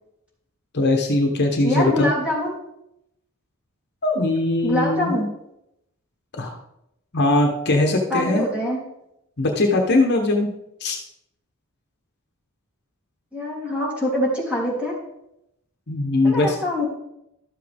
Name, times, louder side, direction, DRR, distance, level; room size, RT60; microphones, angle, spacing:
voice 1, 0.7-2.1 4.0-5.1 6.4-6.6 7.1-8.4 9.4-10.5 10.8-11.0 15.9-16.6, left 2 dB, 50° left, 2 dB, 1.1 m, -20 dB
voice 2, 1.6-2.5 4.6-5.3 8.1-8.8 13.3-15.0 16.2-16.9, left 1 dB, 5° right, -5 dB, 3.1 m, -24 dB
12.0 x 7.6 x 3.6 m, 0.83 s
head